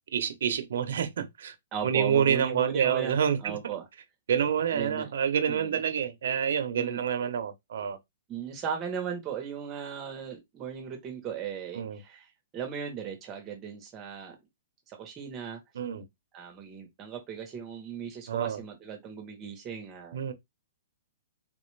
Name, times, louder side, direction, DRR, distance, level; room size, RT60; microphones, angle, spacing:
voice 1, 0.1-1.5 1.8-3.6 4.3-8.0 11.7-12.0 15.8-16.0 18.3-18.6 20.1-20.3, right 8 dB, 60° right, 0.7 m, -27 dB
voice 2, 1.7-3.9 4.7-5.1 5.5-5.8 6.7-7.0 8.3-12.3 12.5-14.4 14.9-15.6 16.3-20.3, right 7 dB, 15° right, 0.9 m, -37 dB
3.7 x 2.4 x 3.2 m
hypercardioid pair, 170°, 0 cm